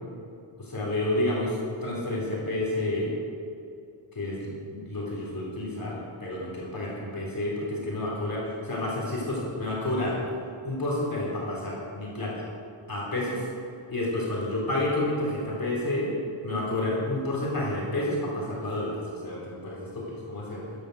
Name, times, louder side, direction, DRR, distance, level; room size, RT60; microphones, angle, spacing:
voice 1, 0.6-3.1 4.1-10.2 10.6-12.5 12.9-13.4 13.9-16.1 16.4-20.6, left 1 dB, 45° left, -4 dB, 4.0 m, -30 dB
15.0 x 10.5 x 6.4 m, 2.5 s
wide cardioid pair, 130°, 49 cm